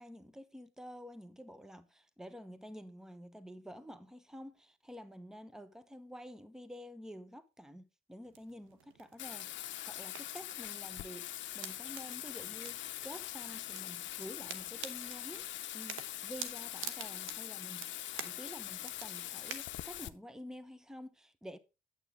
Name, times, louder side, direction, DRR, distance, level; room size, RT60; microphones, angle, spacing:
voice 1, 0.0-15.5 15.7-21.6, equal, 5° right, 0.9 m, -50 dB
sound 1, 8.2-19.6, right 8 dB, 85° right, 1.2 m, -50 dB
Bathtub (filling or washing), 9.2-20.1, left 13 dB, 70° left, 0.6 m, -43 dB
9.1 x 8.0 x 3.7 m
cardioid pair, 90°, 20 cm